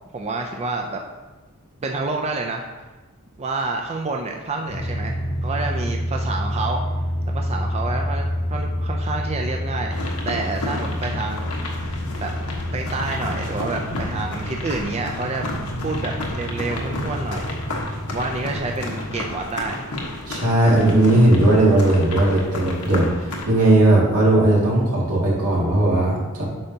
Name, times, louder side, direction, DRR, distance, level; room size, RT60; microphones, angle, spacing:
voice 1, 0.1-1.0 1.8-2.7 3.4-5.2 5.4-6.8 7.3-10.0 10.2-11.9 12.2-12.3 12.7-15.5 15.8-17.6 18.1-19.9, right 3 dB, 30° right, 2 dB, 0.4 m, -28 dB
sound 1, 4.7-19.2, equal, 25° left, 0.8 m, -28 dB
sound 2, 9.9-23.5, left 1 dB, 85° left, 1.3 m, -32 dB
voice 2, 20.3-26.4, right 1 dB, 85° right, -5 dB, 2.2 m, -17 dB
8.7 x 5.7 x 2.8 m, 1.2 s
head